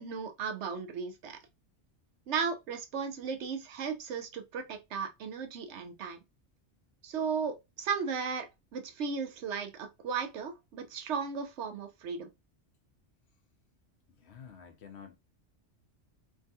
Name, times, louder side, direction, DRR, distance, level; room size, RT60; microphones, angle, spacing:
voice 1, 0.0-1.4 2.3-6.2 7.0-12.3, right 5 dB, 75° right, 0.9 m, -35 dB
voice 2, 14.1-15.2, left 7 dB, 70° left, 0.9 m, -50 dB
3.5 x 2.2 x 2.6 m
omnidirectional pair, 1.2 m